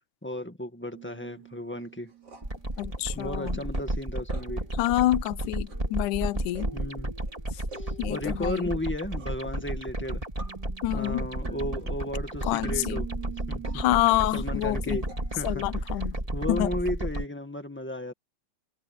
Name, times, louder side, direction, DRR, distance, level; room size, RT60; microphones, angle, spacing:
voice 1, 0.2-2.1 3.1-4.6 6.7-7.1 7.7-10.2 10.9-13.1 13.5-13.8 14.3-15.8 16.3-18.1, left 1 dB, 15° left, 0.3 m, -34 dB
sound 1, 0.9-16.2, right 7 dB, 30° right, 3.5 m, -46 dB
sound 2, 2.4-17.2, right 1 dB, 10° right, 3.2 m, -33 dB
voice 2, 2.8-3.6 4.8-6.7 8.0-8.7 10.8-11.2 12.4-13.0 13.7-15.0 15.4-16.2 16.5-16.7, left 16 dB, 75° left, 2.2 m, -27 dB
omnidirectional pair, 3.7 m